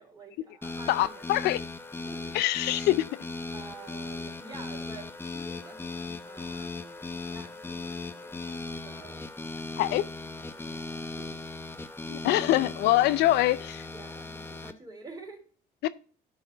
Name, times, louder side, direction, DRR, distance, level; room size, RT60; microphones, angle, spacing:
voice 1, 0.0-1.3 2.0-2.3 3.5-9.3 10.3-11.4 13.8-15.4, right 3 dB, 25° right, 3.4 m, -49 dB
sound 1, 0.6-14.7, left 3 dB, 15° left, 0.7 m, -38 dB
voice 2, 0.9-1.6 2.3-3.0 9.8-10.0 12.1-13.8 15.8-15.9, left 15 dB, 80° left, 0.5 m, -24 dB
11.0 x 4.8 x 3.8 m
cardioid pair, 110°, 17 cm